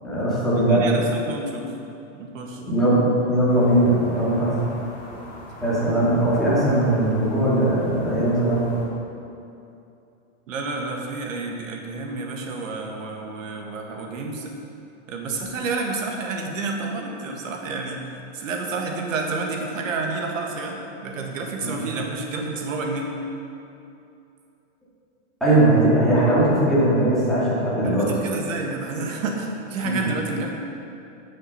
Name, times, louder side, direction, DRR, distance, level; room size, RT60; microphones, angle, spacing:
voice 1, 0.0-1.0 2.6-3.0 3.3-4.6 5.6-8.7 21.6-21.8 25.4-28.1 29.8-30.1, right 1 dB, ahead, -11 dB, 2.3 m, -20 dB
voice 2, 0.6-1.7 2.1-2.6 10.5-14.5 15.1-18.0 18.3-23.1 27.8-30.5, right 3 dB, 90° right, 1 dB, 1.8 m, -29 dB
sound 1, 3.5-8.9, left 1 dB, 20° left, 2.4 m, -40 dB
12.0 x 6.5 x 5.7 m, 2.7 s
supercardioid pair, 180°, 38 cm